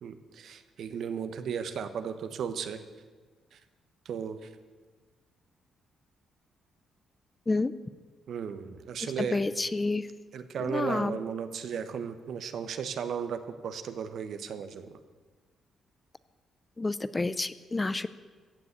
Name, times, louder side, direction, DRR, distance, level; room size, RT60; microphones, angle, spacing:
voice 1, 0.0-2.8 3.5-3.6 4.0-4.5 8.3-9.4 10.3-15.0, right 7 dB, 70° right, 10 dB, 1.1 m, -35 dB
voice 2, 9.3-10.1 10.6-11.2 16.8-18.1, left 3 dB, 20° left, 15 dB, 0.6 m, -29 dB
16.0 x 7.1 x 8.3 m, 1.4 s
cardioid pair, 90°, 0 cm